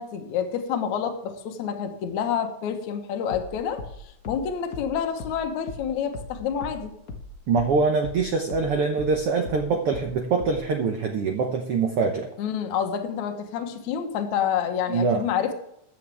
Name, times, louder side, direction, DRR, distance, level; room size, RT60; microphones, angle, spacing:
voice 1, 0.0-6.9 12.4-15.5, left 8 dB, 65° left, 4 dB, 2.3 m, -28 dB
sound 1, 3.3-8.2 8.5-10.7, left 3 dB, 85° left, 0.7 m, -39 dB
voice 2, 7.5-12.3 14.9-15.2, right 4 dB, 70° right, 3 dB, 1.3 m, -24 dB
15.0 x 9.4 x 3.4 m, 0.75 s
omnidirectional pair, 3.9 m